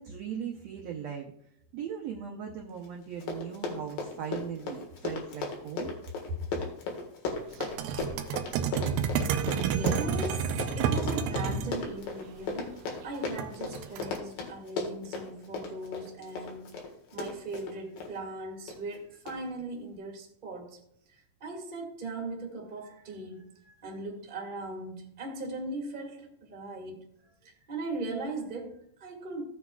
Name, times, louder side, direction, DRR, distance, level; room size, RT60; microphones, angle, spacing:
voice 1, 0.0-1.3 1.7-5.9, right 8 dB, 70° right, 0 dB, 1.6 m, -38 dB
Run, 2.8-2.9 3.1-18.1 18.7-19.0 19.3-19.4, left 3 dB, 80° left, 3.4 m, -36 dB
sound 1, 7.6-11.7 13.4-14.2, right 7 dB, 90° right, 2.5 m, -29 dB
voice 2, 9.4-16.7 17.1-20.8 21.1-27.0 27.4-29.4, right 2 dB, 20° right, -1 dB, 1.4 m, -39 dB
15.5 x 7.9 x 2.4 m, 0.73 s
omnidirectional pair, 3.9 m